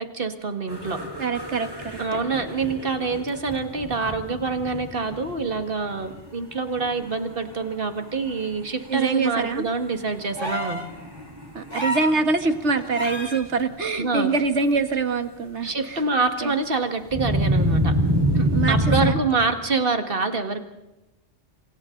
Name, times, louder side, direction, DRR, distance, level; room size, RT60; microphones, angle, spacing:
voice 1, 0.0-1.0 2.0-10.8 14.0-14.3 15.6-18.0 18.3-20.6, right 4 dB, 55° right, 7 dB, 2.1 m, -26 dB
sound 1, 0.7-5.7 6.0-6.3 6.7-7.5 7.9-8.0 8.3-8.5 8.9-9.2 9.9-13.2 13.5-13.6 17.1-19.1, equal, 20° right, 4.7 m, -27 dB
voice 2, 1.2-2.0 8.9-9.7 11.5-16.0 16.4-16.5 18.5-19.2, right 4 dB, 85° right, 9 dB, 1.9 m, -24 dB
sound 2, 10.4-10.9 11.7-12.2 12.9-13.4 14.9-15.0, equal, 25° left, 2.6 m, -29 dB
27.0 x 27.0 x 3.9 m, 0.98 s
omnidirectional pair, 1.1 m